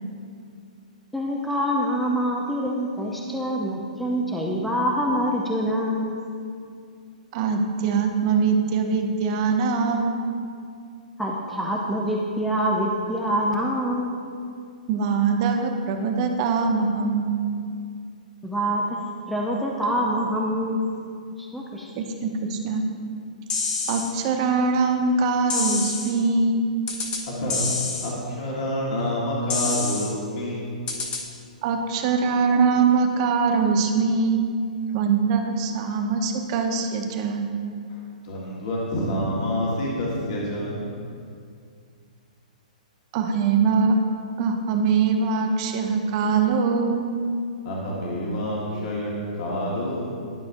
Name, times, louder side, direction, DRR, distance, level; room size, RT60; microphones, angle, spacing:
voice 1, 1.1-6.2 11.2-14.2 18.4-19.0 19.3-20.9 21.5-21.9, equal, ahead, -2 dB, 0.6 m, -25 dB
voice 2, 7.3-10.1 14.9-17.4 22.0-22.8 23.9-26.6 31.6-34.5 34.9-37.5 43.1-43.9 44.4-47.1, right 5 dB, 45° right, 4 dB, 0.8 m, -22 dB
sound 1, 23.5-24.1 25.5-26.1 26.9-27.2 27.5-28.1 29.5-30.1 30.9-31.2, left 4 dB, 25° left, 0.9 m, -27 dB
voice 3, 27.3-27.7 28.0-30.9 37.9-41.0 47.6-50.3, equal, 50° left, -4 dB, 1.4 m, -28 dB
11.0 x 5.6 x 2.6 m, 2.4 s
hypercardioid pair, 130°, 4 cm